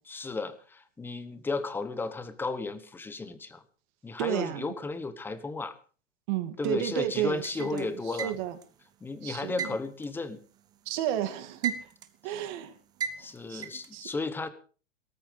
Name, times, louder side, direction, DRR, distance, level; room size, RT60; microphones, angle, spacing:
voice 1, 0.1-3.6 4.0-5.8 6.6-8.4 9.0-10.4 13.2-14.5, left 3 dB, 5° left, 12 dB, 1.0 m, -34 dB
voice 2, 4.2-4.7 6.3-8.6 9.2-9.7 10.9-11.9 12.2-12.8 13.5-13.6 13.9-14.1, right 12 dB, 35° right, 8 dB, 2.4 m, -32 dB
sound 1, 7.4-8.7 9.6-11.0 11.3-12.2 13.0-13.9, right 7 dB, 10° right, 0.6 m, -36 dB
17.5 x 14.0 x 5.1 m, 0.39 s
hypercardioid pair, 155°, 38 cm